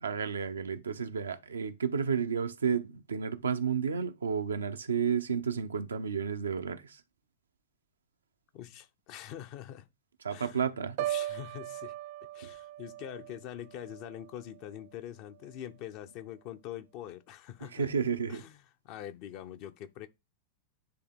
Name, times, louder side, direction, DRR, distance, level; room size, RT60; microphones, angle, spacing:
voice 1, 0.0-7.0 10.2-11.0 17.7-18.4, right 6 dB, 70° right, 0.7 m, -31 dB
voice 2, 8.5-9.9 10.3-10.6 11.0-11.9 12.3-17.9 18.3-20.1, left 11 dB, 45° left, 0.8 m, -44 dB
Piano, 11.0-14.9 15.3-15.7, right 14 dB, 50° right, 0.3 m, -39 dB
9.8 x 3.5 x 3.7 m
figure-of-eight pair, 90°, 0 cm